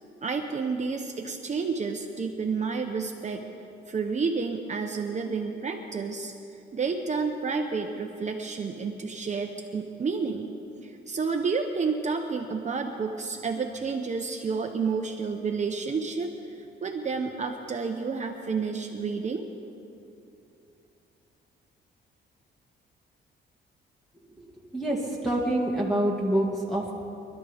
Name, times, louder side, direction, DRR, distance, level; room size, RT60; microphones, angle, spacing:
voice 1, 0.2-3.4 3.9-6.3 6.7-10.5 10.8-19.5, right 5 dB, 35° right, 3 dB, 1.0 m, -30 dB
voice 2, 24.7-26.9, right 1 dB, ahead, -5 dB, 1.9 m, -26 dB
25.5 x 12.0 x 3.6 m, 2.8 s
cardioid pair, 90°, 20 cm